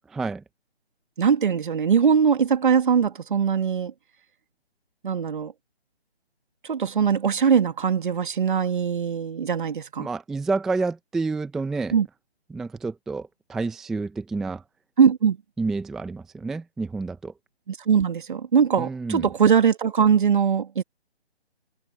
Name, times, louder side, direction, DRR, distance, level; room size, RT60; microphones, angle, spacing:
voice 1, 0.1-0.4 10.0-12.0 12.5-14.6 15.6-17.3 18.8-19.2, right 3 dB, ahead, 0.7 m, -29 dB
voice 2, 1.2-3.9 5.0-5.5 6.7-10.1 11.9-12.1 15.0-15.4 17.7-20.8, right 7 dB, 50° right, 2.3 m, -21 dB
figure-of-eight pair, 150°, 33 cm